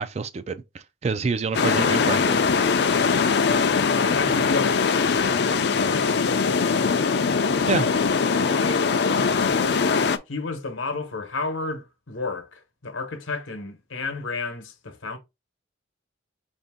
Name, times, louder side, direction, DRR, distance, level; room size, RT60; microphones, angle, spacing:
voice 1, 0.0-2.4 7.7-7.9, right 4 dB, 35° right, 0.3 m, -27 dB
sound 1, 1.5-10.2, left 5 dB, 55° left, 0.4 m, -21 dB
voice 2, 3.5-7.3 8.4-9.6 10.3-15.2, left 3 dB, 80° left, 1.0 m, -32 dB
5.1 x 2.7 x 3.5 m
head